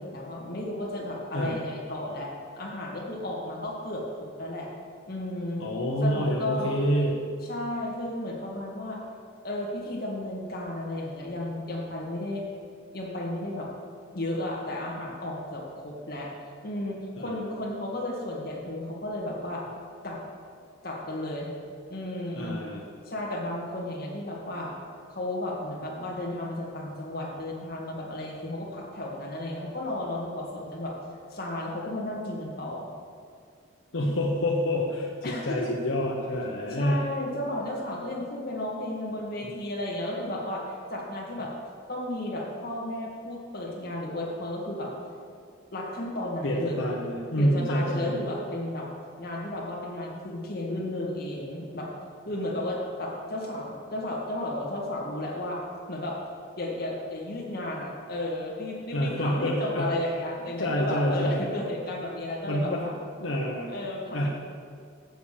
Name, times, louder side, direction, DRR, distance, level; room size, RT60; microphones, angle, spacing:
voice 1, 0.0-4.7 5.1-5.6 6.0-6.8 7.5-9.0 9.4-12.4 12.9-13.7 14.1-16.3 16.6-19.6 20.0-20.2 20.8-21.5 21.9-22.6 23.1-24.7 25.1-30.9 31.3-32.9 35.2-35.7 36.7-41.5 41.9-44.9 45.7-46.8 47.4-48.9 49.2-51.9 52.3-55.6 55.9-56.2 56.6-62.9 63.7-64.3, left 1 dB, 50° left, -3 dB, 2.0 m, -33 dB
voice 2, 5.6-7.2 17.2-17.4 22.3-22.8 33.9-37.0 39.4-39.5 46.4-48.2 58.9-59.9 60.6-61.5 62.4-62.9 63.2-63.7 64.1-64.3, equal, 80° left, -2 dB, 1.1 m, -27 dB
7.9 x 7.1 x 6.7 m, 2.2 s
head